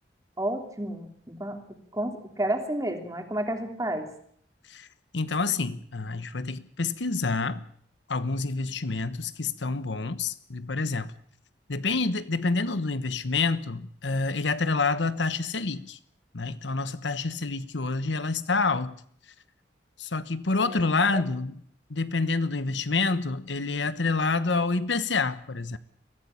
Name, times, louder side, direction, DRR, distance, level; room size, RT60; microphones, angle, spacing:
voice 1, 0.4-1.6 1.9-4.1 20.6-20.8 21.1-21.2, right 1 dB, 20° right, 2.9 m, -31 dB
voice 2, 5.1-7.6 8.1-11.1 11.7-16.0 16.3-19.0 20.0-21.6 21.9-25.8, left 3 dB, 85° left, 1.1 m, -28 dB
23.0 x 15.0 x 8.7 m
head